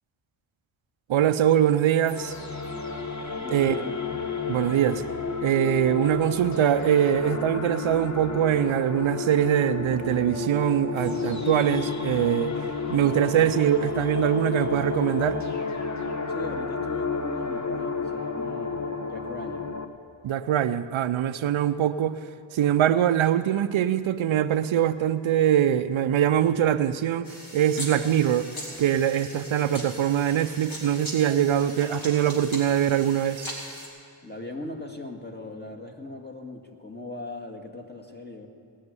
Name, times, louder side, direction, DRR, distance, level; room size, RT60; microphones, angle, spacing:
voice 1, 1.1-2.3 3.5-3.8 4.5-5.0 5.4-12.6 12.9-15.4 20.2-22.2 22.5-28.5 28.8-33.5, right 10 dB, 75° right, 11 dB, 0.6 m, -23 dB
sound 1, 2.1-19.8, left 4 dB, 35° left, 1.1 m, -31 dB
voice 2, 3.4-4.1 16.3-19.8 34.2-38.5, left 2 dB, 20° left, 3 dB, 1.9 m, -39 dB
sound 2, 27.2-33.9, equal, 75° left, 3.5 m, -40 dB
19.0 x 6.5 x 9.6 m, 2.5 s
cardioid pair, 60°, 48 cm